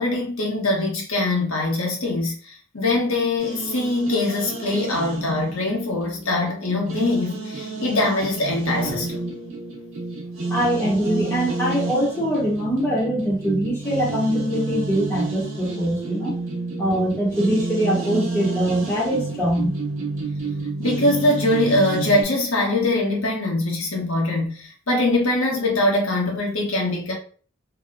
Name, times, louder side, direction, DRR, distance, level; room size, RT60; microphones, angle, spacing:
voice 1, 0.0-9.3 20.8-27.1, left 2 dB, 75° left, 1.0 m, -22 dB
sound 1, 3.4-22.2, right 3 dB, 75° right, 0.9 m, -30 dB
voice 2, 10.5-16.4 16.8-19.7, equal, 10° left, 1.0 m, -23 dB
2.8 x 2.2 x 3.6 m
head